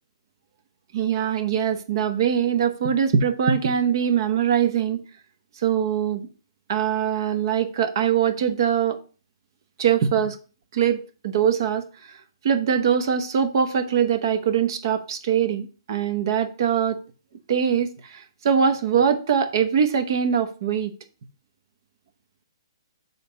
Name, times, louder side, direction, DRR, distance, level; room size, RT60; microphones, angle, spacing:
voice 1, 0.9-5.0 5.6-6.3 6.7-9.0 9.8-10.4 10.7-12.1 12.4-17.0 17.5-20.9, right 8 dB, 55° right, 1.0 m, -22 dB
7.0 x 4.1 x 5.7 m
hypercardioid pair, 145°, 3 cm